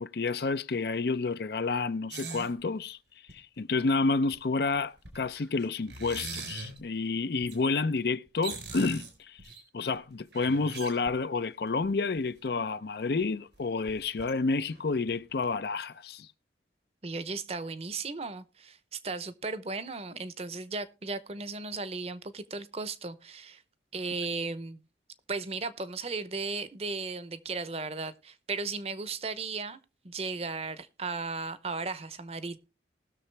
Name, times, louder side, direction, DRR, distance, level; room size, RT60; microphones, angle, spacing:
voice 1, 0.0-3.0 3.3-9.4 9.7-16.3, left 3 dB, 65° left, 0.5 m, -30 dB
sound 1, 2.1-2.5 3.3-3.4 4.3-4.4 4.8-6.8 7.4-7.6 8.0-8.1 8.3-9.6 10.2-11.4 11.8-11.9 12.2-12.3 13.2-13.3 13.5-13.6 13.9-14.3 14.7-15.2 15.4-15.5, right 4 dB, 90° right, 4.2 m, -41 dB
voice 2, 17.0-23.6 23.9-24.8 25.3-29.8 30.0-32.6, right 4 dB, 35° right, 0.7 m, -36 dB
19.5 x 6.7 x 3.3 m
head